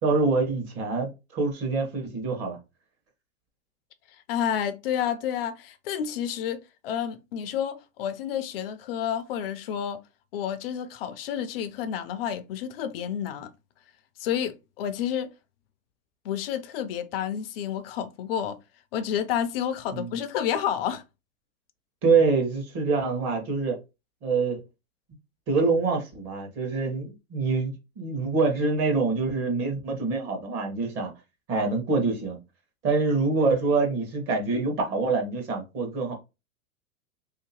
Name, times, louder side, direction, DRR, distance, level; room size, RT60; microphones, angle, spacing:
voice 1, 0.0-2.6 19.9-20.1 22.0-23.8 24.2-24.6 25.5-31.1 31.5-32.4 32.8-36.1, right 4 dB, 35° right, 1.1 m, -25 dB
voice 2, 4.3-10.0 10.3-13.5 14.2-15.3 16.2-18.6 18.9-21.0, left 9 dB, 45° left, 0.4 m, -30 dB
3.2 x 2.8 x 2.8 m
hypercardioid pair, 130°, 43 cm